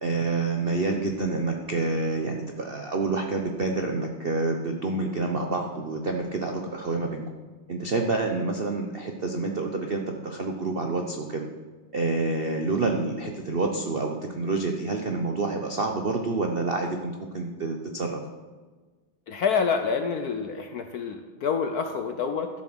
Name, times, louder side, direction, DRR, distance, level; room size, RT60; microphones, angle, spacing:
voice 1, 0.0-7.2 7.7-11.5 11.9-18.2, right 3 dB, 65° right, 3 dB, 0.5 m, -28 dB
voice 2, 19.3-22.5, left 6 dB, 65° left, 7 dB, 0.9 m, -27 dB
12.0 x 7.4 x 6.1 m, 1.4 s
omnidirectional pair, 2.3 m